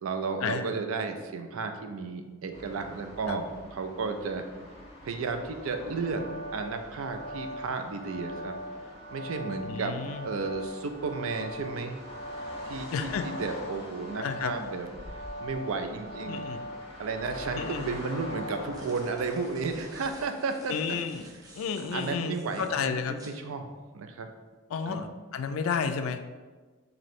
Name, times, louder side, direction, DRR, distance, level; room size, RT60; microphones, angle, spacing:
voice 1, 0.0-4.4 5.0-8.6 9.1-10.0 10.2-12.0 12.6-12.9 13.2-16.5 17.0-21.0 21.9-24.3 24.9-25.0, right 4 dB, 85° right, 7 dB, 0.4 m, -33 dB
sound 1, 2.5-20.3, left 1 dB, 30° left, 0.6 m, -46 dB
sound 2, 5.7-18.6, equal, 70° right, 1.2 m, -41 dB
voice 2, 9.6-10.3 12.9-13.3 14.2-14.6 16.3-16.6 17.5-18.0 20.7-21.2 21.5-23.2 24.7-26.3, left 6 dB, 85° left, 8 dB, 0.3 m, -32 dB
sound 3, 18.6-23.4, right 1 dB, 20° right, 0.4 m, -53 dB
3.1 x 2.7 x 4.2 m, 1.3 s
head